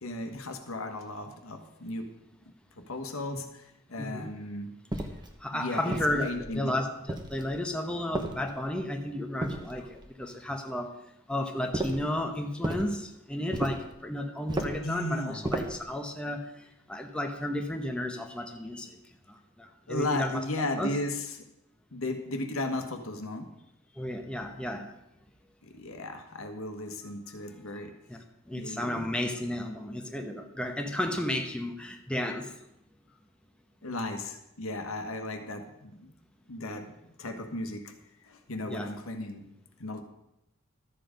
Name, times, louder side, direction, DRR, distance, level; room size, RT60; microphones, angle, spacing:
voice 1, 0.0-2.1 2.8-4.7 5.5-6.0 6.2-6.7 14.8-15.4 19.9-21.3 21.9-23.5 25.6-27.9 28.5-29.1 33.8-36.1 36.5-37.9 38.2-39.5 39.8-40.0, left 2 dB, 85° left, 5 dB, 1.4 m, -35 dB
voice 2, 4.0-4.3 5.4-10.9 11.3-19.0 19.3-20.4 20.8-20.9 24.0-24.9 28.1-32.5 38.7-38.9, left 1 dB, 5° left, 3 dB, 0.9 m, -33 dB
sound 1, 4.9-5.3 5.9-6.6 7.1-7.6 8.1-8.8 9.4-10.1 11.7-12.1 12.6-12.9 13.5-13.9 14.5-14.9 15.4-15.9, right 1 dB, 20° right, 1.0 m, -34 dB
12.5 x 7.5 x 5.1 m, 0.85 s
head